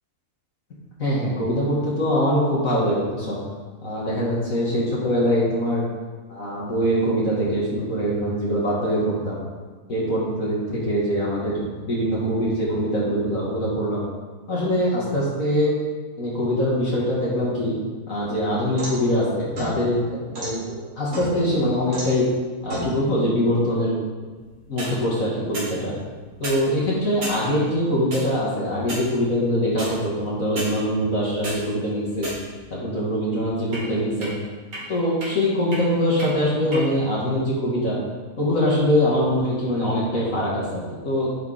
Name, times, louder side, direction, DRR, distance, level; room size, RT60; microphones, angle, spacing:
voice 1, 1.0-3.4 3.8-5.8 6.3-9.4 9.9-14.0 14.5-15.7 16.2-17.7 18.1-20.0 20.3-22.2 22.6-24.0 24.7-25.9 26.4-32.3 32.7-34.4 34.9-38.0 38.4-41.4, equal, 55° left, -6 dB, 2.2 m, -23 dB
sound 1, 18.1-19.1 19.6-20.6 21.1-21.6 21.9-22.2 22.7-22.9 24.6-24.9 25.5-25.7 26.3-26.6 27.2-27.4 28.1-28.2 28.8-29.1 29.8-29.9 30.6-30.7 31.2-31.6 32.2-32.7 33.7-33.8 34.2-34.3 34.7-34.8 35.2-35.3 35.7-35.8 36.2-36.3 36.7-36.8, equal, 60° right, 2.7 m, -32 dB
10.5 x 5.1 x 5.0 m, 1.4 s
omnidirectional pair, 1.7 m